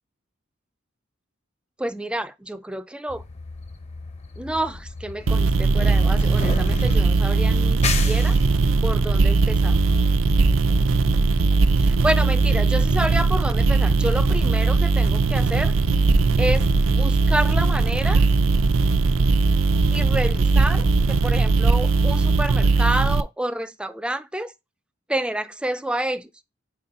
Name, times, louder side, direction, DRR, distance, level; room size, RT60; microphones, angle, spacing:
voice 1, 1.8-3.2 4.4-8.4 8.8-9.8 11.8-15.7 16.4-18.2 19.9-24.5 25.1-26.5, right 1 dB, 5° right, 0.4 m, -29 dB
sound 1, 3.1-21.9, left 1 dB, 35° left, 0.7 m, -33 dB
sound 2, 5.3-23.2, right 3 dB, 80° right, 0.5 m, -19 dB
4.5 x 4.1 x 5.4 m
head